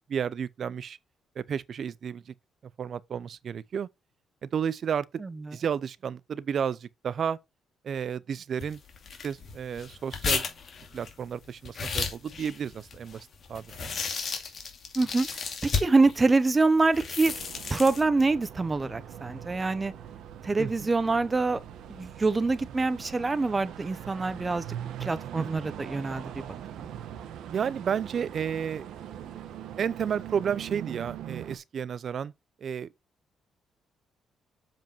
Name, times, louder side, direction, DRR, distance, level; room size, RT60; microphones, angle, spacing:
voice 1, 0.1-1.0 1.4-2.3 2.8-3.9 4.4-5.1 5.5-7.4 7.8-8.8 9.2-10.5 10.9-13.9 20.6-20.9 25.4-25.6 27.5-28.9 29.8-32.3 32.6-32.9, right 7 dB, 55° right, 0.6 m, -32 dB
voice 2, 5.2-5.6 14.9-17.3 17.7-19.9 20.4-21.6 21.9-24.6 25.0-26.2 26.7-26.9, right 3 dB, 25° right, 0.9 m, -25 dB
sound 1, 8.6-16.2 16.8-18.0, left 5 dB, 50° left, 2.3 m, -33 dB
sound 2, 17.2-31.6, right 10 dB, 80° right, 1.2 m, -41 dB
7.3 x 5.2 x 4.4 m
cardioid pair, 90°, 0 cm